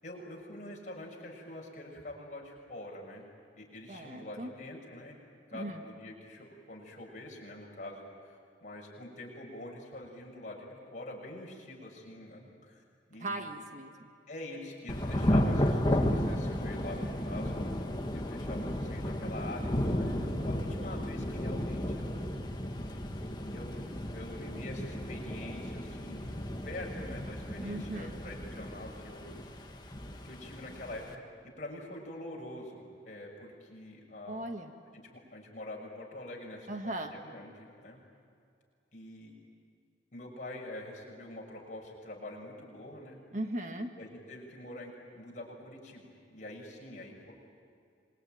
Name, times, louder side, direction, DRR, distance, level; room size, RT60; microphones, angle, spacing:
voice 1, 0.0-3.3 3.5-5.1 5.5-12.8 13.1-13.4 14.3-17.8 18.1-22.3 23.5-23.8 24.1-26.3 26.6-29.3 30.2-31.2 31.6-34.4 35.1-38.0 38.9-39.3 40.1-43.2 43.9-47.3, left 1 dB, 45° left, -1 dB, 6.4 m, -45 dB
voice 2, 3.9-4.5 5.5-5.8 13.2-14.1 27.6-28.2 34.3-34.7 36.7-37.1 43.3-43.9, right 1 dB, 45° right, 5 dB, 1.7 m, -38 dB
Thunder / Rain, 14.9-31.1, equal, 25° left, 1.7 m, -33 dB
27.0 x 23.0 x 9.2 m, 2.4 s
head